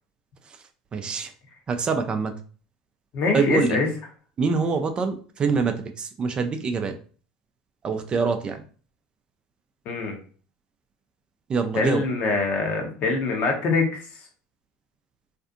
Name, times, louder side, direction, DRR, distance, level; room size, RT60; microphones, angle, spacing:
voice 1, 0.9-1.3 1.7-2.3 3.3-3.8 4.4-6.9 7.8-8.6 11.5-12.0, right 4 dB, 30° right, 7 dB, 0.4 m, -25 dB
voice 2, 3.1-3.9 9.9-10.1 11.7-13.8, left 3 dB, 50° left, 2 dB, 0.9 m, -24 dB
2.5 x 2.4 x 2.4 m, 0.41 s
hypercardioid pair, 90°, 3 cm